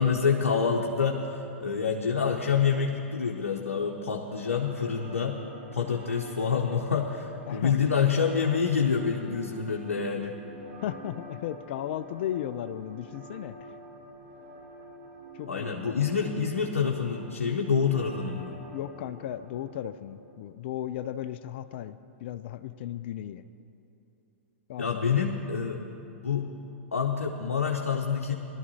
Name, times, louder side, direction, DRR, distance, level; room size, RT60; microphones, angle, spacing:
voice 1, 0.0-5.4 5.7-10.4 15.5-18.5 24.8-25.8 26.2-26.5 26.9-28.3, left 6 dB, 85° left, 0 dB, 0.8 m, -27 dB
sound 1, 4.3-20.3, right 1 dB, 70° right, 2.3 m, -48 dB
voice 2, 7.5-7.8 10.8-13.7 15.3-15.7 18.6-23.4 24.7-25.1, left 11 dB, 55° left, 13 dB, 0.4 m, -35 dB
18.5 x 12.5 x 2.8 m, 2.8 s
figure-of-eight pair, 105°, 7 cm